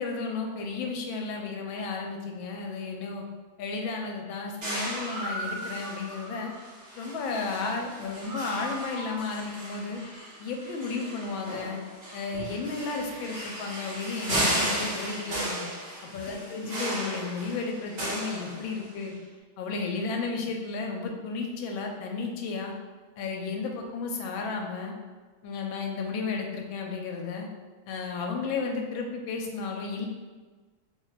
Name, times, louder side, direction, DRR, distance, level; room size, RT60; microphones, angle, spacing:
voice 1, 0.0-3.2 3.6-6.5 7.0-10.0 10.4-11.8 12.1-15.7 16.1-19.1 19.6-22.7 23.2-24.9 25.4-27.5 27.9-30.1, left 4 dB, 80° left, 1 dB, 1.3 m, -33 dB
sound 1, 4.6-19.1, right 1 dB, 45° right, 1.0 m, -35 dB
3.2 x 2.2 x 3.8 m, 1.4 s
omnidirectional pair, 2.2 m